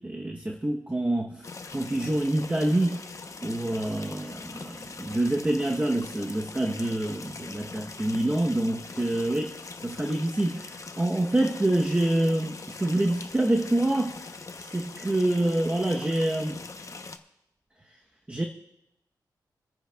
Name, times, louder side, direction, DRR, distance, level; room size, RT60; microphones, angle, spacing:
voice 1, 0.0-1.4 1.7-3.0 3.4-9.5 9.8-14.2 14.6-16.6 18.3-18.4, right 1 dB, 20° right, 0.9 m, -26 dB
Leak in Dam, 1.4-17.2, left 3 dB, 45° left, 0.8 m, -42 dB
29.0 x 9.9 x 2.3 m
wide cardioid pair, 80°, 8 cm